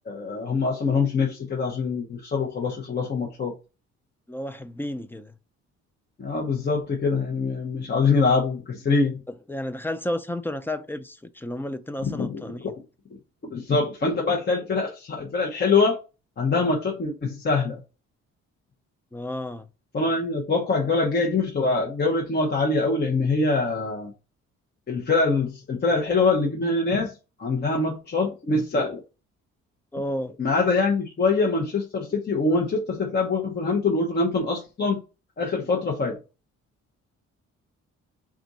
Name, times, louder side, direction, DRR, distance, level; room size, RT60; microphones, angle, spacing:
voice 1, 0.1-3.6 6.2-9.2 12.2-12.4 13.5-16.0 16.4-17.8 19.9-24.1 24.9-27.1 27.4-29.0 30.4-35.0 35.4-36.2, left 3 dB, 35° left, 0.9 m, -24 dB
voice 2, 4.3-5.3 9.3-12.7 19.1-19.7 29.9-30.4, left 1 dB, 5° left, 0.4 m, -32 dB
3.6 x 2.6 x 4.0 m
cardioid pair, 90°, 30 cm